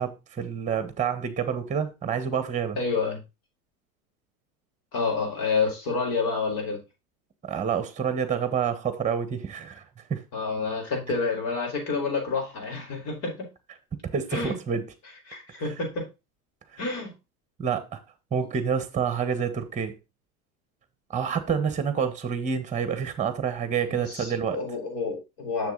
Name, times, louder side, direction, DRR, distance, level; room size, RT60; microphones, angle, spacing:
voice 1, 0.0-2.8 7.4-9.8 10.1-10.2 14.1-14.9 16.7-16.8 17.6-18.0 18.3-20.0 21.1-24.6, right 7 dB, 15° right, 1.3 m, -28 dB
voice 2, 2.8-3.2 4.9-6.8 10.3-13.5 14.3-14.6 15.3-16.0 16.8-17.1 23.9-25.7, left 4 dB, 50° left, 4.8 m, -28 dB
6.8 x 6.8 x 3.9 m
hypercardioid pair, 95°, 44 cm